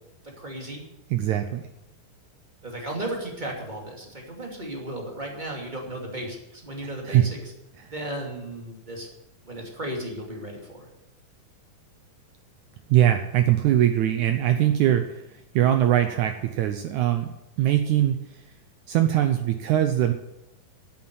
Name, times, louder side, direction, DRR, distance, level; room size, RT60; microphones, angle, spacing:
voice 1, 0.2-0.8 2.6-7.4 7.9-9.1 9.5-10.9, right 1 dB, 15° right, 0 dB, 2.2 m, -35 dB
voice 2, 1.1-1.7 7.0-7.3 7.8-7.9 12.9-18.5 18.9-20.1, right 12 dB, 80° right, 7 dB, 1.7 m, -22 dB
9.8 x 8.8 x 9.4 m, 0.88 s
omnidirectional pair, 4.3 m